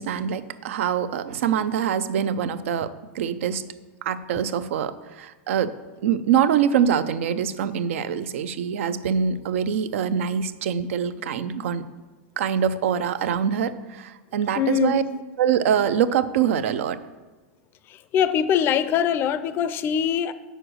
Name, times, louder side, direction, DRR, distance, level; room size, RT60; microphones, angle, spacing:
voice 1, 0.0-3.7 4.0-5.8 6.0-11.8 12.4-15.0 15.4-17.0, right 8 dB, 75° right, 13 dB, 0.6 m, -24 dB
voice 2, 14.6-15.1 17.9-20.3, left 8 dB, 30° left, 14 dB, 0.5 m, -23 dB
7.8 x 6.5 x 6.3 m, 1.2 s
supercardioid pair, 140°, 7 cm